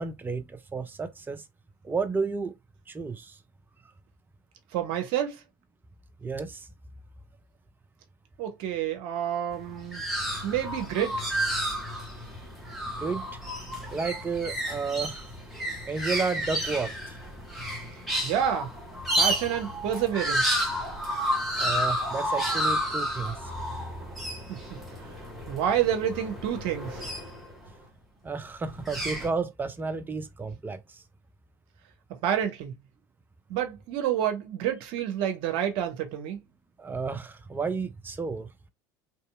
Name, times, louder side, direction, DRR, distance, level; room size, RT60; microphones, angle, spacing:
voice 1, 0.0-1.4 1.8-2.5 2.9-3.4 6.2-6.7 13.0-13.2 13.9-15.3 15.9-17.2 21.6-23.3 28.2-31.0 36.8-38.7, right 4 dB, 15° right, 0.5 m, -32 dB
voice 2, 4.7-5.4 8.4-10.1 10.4-11.3 18.2-18.7 19.2-20.5 24.5-24.8 25.5-27.0 32.1-32.8 33.5-36.4, right 10 dB, 55° right, 0.7 m, -29 dB
sound 1, 9.5-27.7 28.6-29.3, equal, ahead, 1.1 m, -31 dB
3.0 x 2.8 x 2.3 m
figure-of-eight pair, 70°, 11 cm